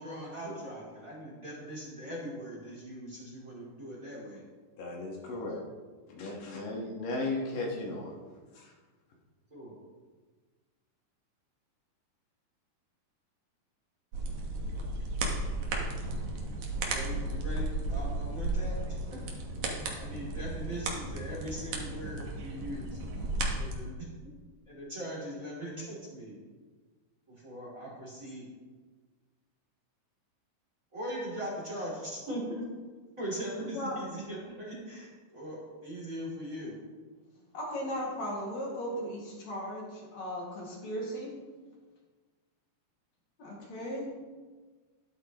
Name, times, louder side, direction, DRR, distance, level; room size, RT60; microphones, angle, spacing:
voice 1, 0.0-4.4 5.2-5.5 9.5-9.7 16.8-17.6 17.9-19.2 20.0-23.0 23.6-23.9 24.7-26.3 27.3-28.5 30.9-32.6 33.2-36.7, equal, 25° right, -6 dB, 2.9 m, -40 dB
voice 2, 4.8-5.6 6.1-8.1 8.5-8.7, left 2 dB, 75° left, -2 dB, 3.2 m, -35 dB
sound 1, 14.1-23.7, right 2 dB, 65° right, 2.6 m, -34 dB
voice 3, 33.6-34.0 37.5-41.3 43.4-44.1, equal, 55° left, -4 dB, 3.2 m, -37 dB
12.5 x 11.0 x 3.0 m, 1.4 s
omnidirectional pair, 3.9 m